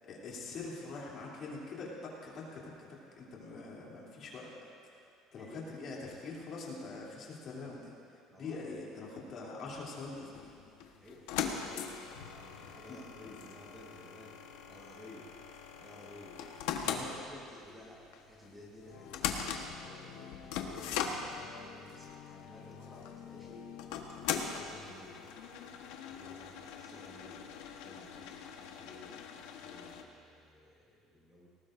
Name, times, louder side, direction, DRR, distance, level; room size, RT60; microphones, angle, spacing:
voice 1, 0.1-4.5 5.3-7.9 8.4-10.5 12.9-13.4 16.8-17.2, left 3 dB, 40° left, -5 dB, 3.0 m, -44 dB
voice 2, 8.3-9.1 11.0-12.0 12.2-14.4 14.7-15.3 15.8-16.4 16.8-23.7 24.4-25.2 26.1-29.2 29.6-31.5, left 1 dB, 5° right, -4 dB, 1.5 m, -54 dB
sound 1, 10.3-30.0, left 7 dB, 85° left, 1.2 m, -41 dB
sound 2, 18.9-25.8, left 9 dB, 65° left, 0.7 m, -52 dB
19.5 x 18.5 x 2.6 m, 2.4 s
cardioid pair, 175°, 0 cm